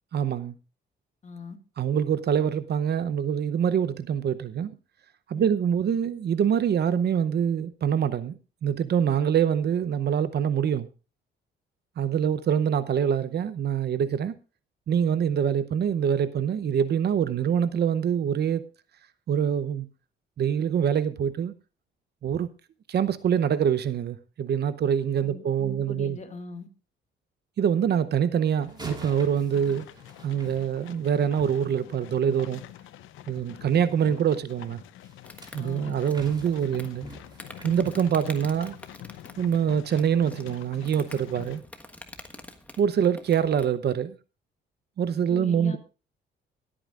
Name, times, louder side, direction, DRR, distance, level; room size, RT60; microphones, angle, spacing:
voice 1, 0.1-0.6 1.8-4.7 5.3-10.9 12.0-14.3 14.9-18.7 19.3-19.9 20.4-21.5 22.2-22.5 22.9-26.2 27.6-29.8 30.2-32.6 33.3-34.8 35.5-37.0 37.6-38.8 39.4-41.6 42.8-44.2 45.0-45.8, right 8 dB, 55° right, 0.7 m, -25 dB
voice 2, 1.2-1.6 5.3-5.5 25.2-26.7 35.6-36.0 45.3-45.8, left 3 dB, 35° left, 2.1 m, -40 dB
sound 1, 28.6-41.6, left 12 dB, 90° left, 0.8 m, -45 dB
sound 2, 28.7-31.2 35.0-38.8 39.2-39.4 40.0-40.1, right 1 dB, 20° right, 3.2 m, -46 dB
Insect, 35.2-43.8, left 1 dB, 5° left, 1.4 m, -48 dB
23.0 x 8.8 x 2.4 m
cardioid pair, 90°, 20 cm